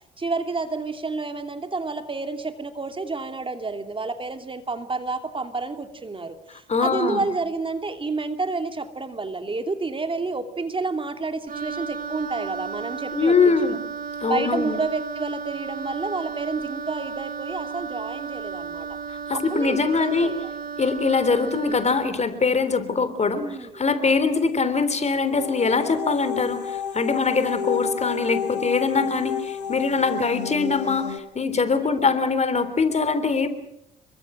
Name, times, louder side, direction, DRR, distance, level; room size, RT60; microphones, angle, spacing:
voice 1, 0.2-13.6 14.3-19.0 19.3-20.5 23.4-23.8 28.9-29.2 31.8-32.1, right 3 dB, 25° right, 7 dB, 2.7 m, -30 dB
voice 2, 6.7-7.2 13.1-13.8 14.2-14.7 19.1-20.3 20.8-33.5, left 4 dB, 35° left, 11 dB, 3.4 m, -23 dB
Wind instrument woodwind instrument, 11.5-22.1, right 6 dB, 45° right, 3.0 m, -34 dB
sound 1, 25.1-31.2, left 8 dB, 85° left, 1.7 m, -30 dB
28.0 x 23.5 x 6.2 m, 0.79 s
hypercardioid pair, 50°, 20 cm